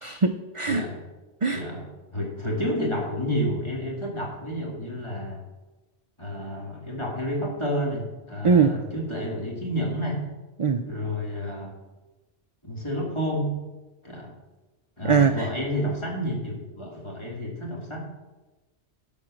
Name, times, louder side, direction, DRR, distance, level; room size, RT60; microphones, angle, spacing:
voice 1, 0.0-0.9 1.4-1.6 8.4-8.8 10.6-10.8 15.0-15.5, right 5 dB, 45° right, 7 dB, 0.4 m, -21 dB
voice 2, 0.7-1.0 1.5-5.4 6.2-10.2 10.8-11.7 12.6-13.5 14.0-14.3 15.0-18.0, equal, 25° left, -2 dB, 2.5 m, -30 dB
12.5 x 5.3 x 6.3 m, 1.1 s
omnidirectional pair, 1.2 m